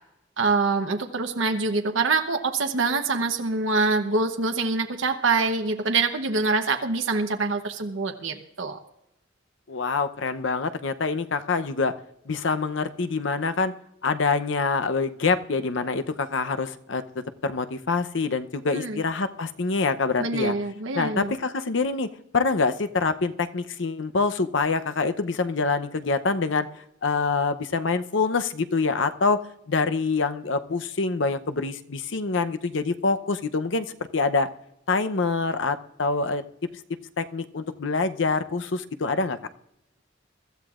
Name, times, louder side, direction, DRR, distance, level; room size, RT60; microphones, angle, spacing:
voice 1, 0.4-8.8 18.7-19.0 20.2-21.4, right 3 dB, 85° right, 4 dB, 1.0 m, -25 dB
voice 2, 9.7-11.9 12.3-13.7 14.0-17.0 17.4-20.5 20.9-22.1 22.3-26.7 27.0-29.4 29.7-33.9 34.1-34.5 34.9-36.4 37.2-39.4, left 4 dB, 75° left, 10 dB, 0.7 m, -25 dB
23.5 x 13.5 x 2.5 m, 0.83 s
head